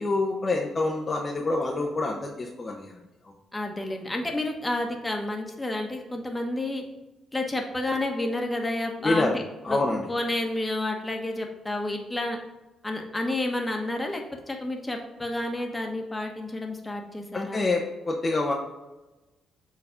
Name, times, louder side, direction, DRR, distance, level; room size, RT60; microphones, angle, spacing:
voice 1, 0.0-2.9 9.0-9.4 9.6-10.1 17.3-18.5, left 2 dB, 30° left, -1 dB, 0.9 m, -26 dB
voice 2, 3.5-6.8 7.3-9.4 9.7-9.8 10.1-12.4 12.8-17.6, left 2 dB, 15° left, 2 dB, 1.3 m, -30 dB
7.1 x 4.0 x 5.0 m, 1.1 s
cardioid pair, 90°, 0 cm